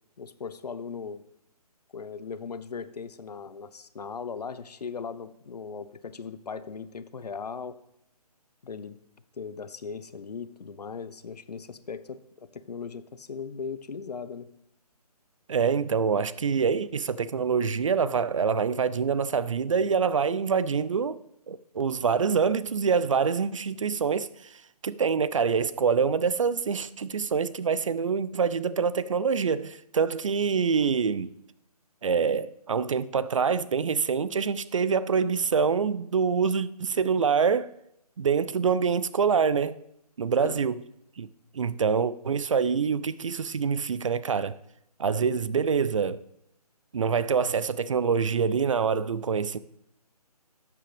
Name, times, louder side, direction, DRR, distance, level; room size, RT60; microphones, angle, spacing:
voice 1, 0.2-1.2 1.9-7.8 8.6-9.0 9.4-14.5 40.4-40.6, left 5 dB, 80° left, 0.7 m, -38 dB
voice 2, 15.5-21.2 21.5-31.3 32.0-37.7 38.2-39.8 40.2-40.8 41.2-41.3 41.5-44.6 45.0-46.2 46.9-49.6, right 6 dB, 50° right, 0.5 m, -25 dB
12.0 x 7.7 x 3.4 m
hypercardioid pair, 165°, 20 cm